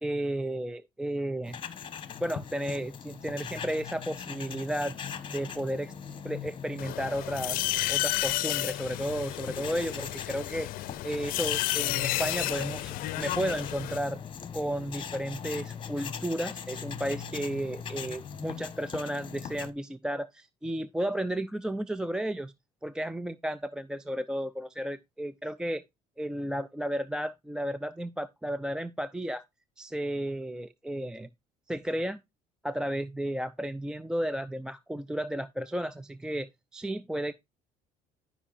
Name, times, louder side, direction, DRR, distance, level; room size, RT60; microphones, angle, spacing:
voice 1, 0.0-1.6 2.2-4.9 5.3-5.9 6.2-10.7 11.0-14.2 14.5-22.5 22.8-25.8 26.2-29.4 29.8-31.3 31.7-32.2 32.6-37.3, right 1 dB, 5° right, 0.4 m, -33 dB
sound 1, 1.4-19.7, left 7 dB, 35° left, 1.1 m, -41 dB
sound 2, 6.8-14.0, left 18 dB, 70° left, 0.5 m, -32 dB
12.5 x 5.5 x 2.5 m
cardioid pair, 110°, 15 cm